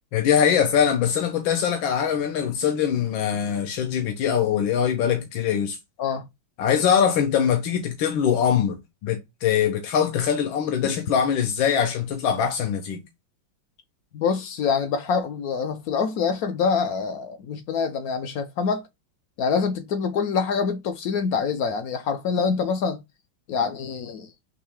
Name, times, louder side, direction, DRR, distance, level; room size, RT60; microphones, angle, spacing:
voice 1, 0.1-5.8 6.6-13.0, left 8 dB, 80° left, 1.6 m, -22 dB
voice 2, 14.1-18.9 19.4-23.0 23.5-24.3, left 5 dB, 65° left, 0.9 m, -25 dB
4.5 x 3.2 x 3.4 m
omnidirectional pair, 2.1 m